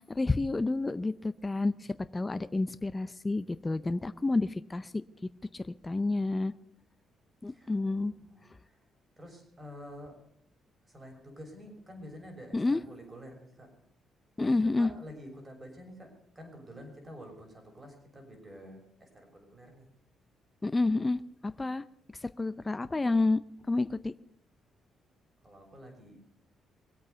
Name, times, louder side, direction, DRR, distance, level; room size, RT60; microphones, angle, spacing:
voice 1, 0.0-1.7 2.1-5.0 5.5-6.5 7.4-8.1 12.5-12.8 14.4-14.9 20.6-21.8 22.4-23.4 23.7-24.1, left 2 dB, 20° left, 13 dB, 0.6 m, -29 dB
voice 2, 7.5-8.8 9.2-10.2 10.9-13.7 14.4-19.9 25.4-26.2, equal, 25° right, 3 dB, 6.4 m, -49 dB
23.0 x 8.5 x 6.9 m, 0.69 s
cardioid pair, 90°, 0 cm